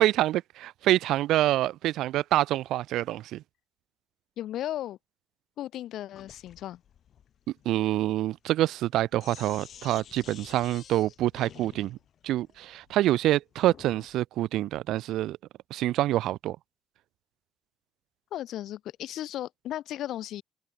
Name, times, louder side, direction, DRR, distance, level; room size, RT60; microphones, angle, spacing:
voice 1, 0.0-3.4 7.7-12.0 12.2-15.4 15.7-16.6, right 14 dB, 85° right, 0.3 m, -26 dB
voice 2, 4.4-5.0 5.6-6.8 18.3-20.4, left 12 dB, 80° left, 1.0 m, -35 dB
Sink (filling or washing), 6.1-14.1, left 9 dB, 65° left, 1.8 m, -51 dB
cardioid pair, 90°, 0 cm